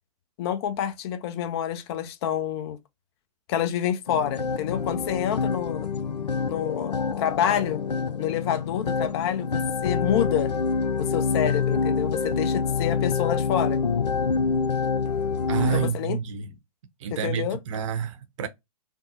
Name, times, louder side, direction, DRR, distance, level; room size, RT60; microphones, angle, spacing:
voice 1, 0.4-2.8 3.5-5.9 6.5-7.8 8.2-10.5 11.0-13.8 15.7-16.2 17.1-17.6, left 10 dB, 40° left, 0.6 m, -28 dB
sound 1, 4.1-15.9, left 5 dB, 85° left, 0.4 m, -26 dB
voice 2, 15.5-16.5 17.0-18.5, right 7 dB, 50° right, 0.7 m, -29 dB
3.5 x 2.1 x 2.8 m
figure-of-eight pair, 120°, 20 cm